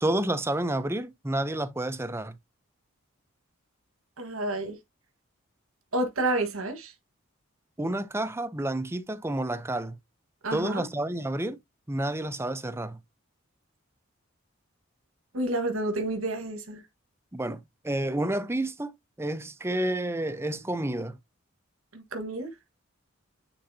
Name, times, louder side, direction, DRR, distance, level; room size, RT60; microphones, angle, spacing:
voice 1, 0.0-2.4 7.8-10.0 10.5-11.6 11.9-13.0 17.3-17.6 17.8-18.9 19.2-21.2, right 1 dB, 10° right, 0.6 m, -30 dB
voice 2, 4.2-4.8 5.9-6.9 10.4-10.8 15.3-16.8 21.9-22.5, right 2 dB, 80° right, 1.6 m, -30 dB
9.8 x 3.9 x 2.7 m
head